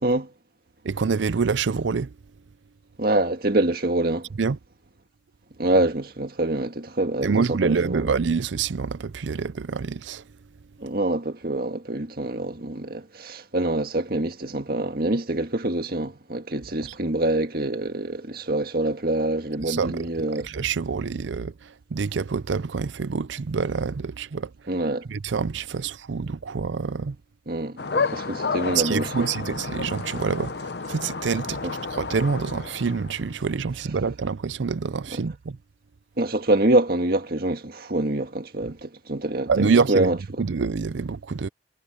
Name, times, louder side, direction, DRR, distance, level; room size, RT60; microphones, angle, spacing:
voice 1, 0.8-2.1 4.4-4.6 7.2-10.2 16.8-16.9 19.7-21.5 21.9-24.5 25.1-27.2 28.7-31.6 31.9-35.6 39.5-40.1 40.4-41.5, right 5 dB, 75° right, 0.5 m, -26 dB
voice 2, 3.0-4.3 5.6-8.1 10.8-20.5 24.7-25.1 27.5-29.3 31.6-31.7 35.1-35.2 36.2-40.4, right 2 dB, 50° right, 1.8 m, -25 dB
sound 1, 27.8-33.5, left 4 dB, 55° left, 0.8 m, -31 dB
head